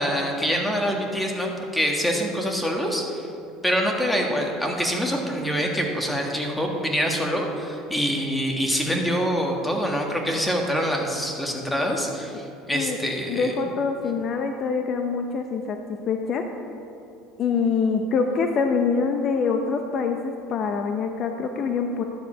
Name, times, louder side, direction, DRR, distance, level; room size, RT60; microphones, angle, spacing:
voice 1, 0.0-3.3 3.6-13.5, equal, 5° left, 1 dB, 1.6 m, -25 dB
voice 2, 13.3-15.8 16.1-16.4 17.4-22.0, left 5 dB, 50° left, 5 dB, 0.7 m, -25 dB
11.0 x 6.8 x 5.1 m, 2.8 s
supercardioid pair, 95°, 0 cm